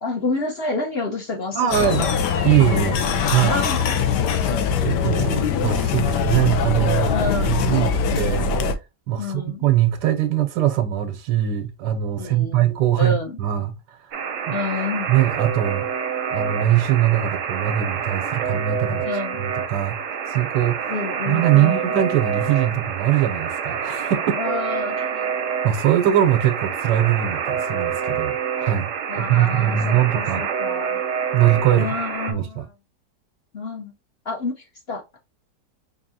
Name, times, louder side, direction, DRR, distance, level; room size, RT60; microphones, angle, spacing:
voice 1, 0.0-2.3 3.5-3.9 7.1-7.6 9.2-9.6 12.2-12.7 12.9-13.4 14.5-15.1 19.0-19.4 20.9-21.9 24.3-25.4 29.1-31.0 31.7-32.7 33.5-33.9 34.2-35.2, left 3 dB, 55° left, 0.7 m, -29 dB
sound 1, 1.5-6.5, left 1 dB, 25° left, 0.8 m, -37 dB
voice 2, 1.5-2.1 2.4-3.6 4.8-7.1 7.5-8.5 9.1-14.6 15.1-16.0 16.3-19.1 19.4-20.0 20.3-20.8 21.3-24.4 25.6-30.4 31.3-31.9 32.3-32.7, right 12 dB, 85° right, 1.3 m, -21 dB
sound 2, 1.7-8.8, left 6 dB, 80° left, 1.2 m, -22 dB
Alarm, 14.1-32.3, right 7 dB, 60° right, 0.8 m, -27 dB
4.9 x 2.7 x 2.6 m
omnidirectional pair, 1.9 m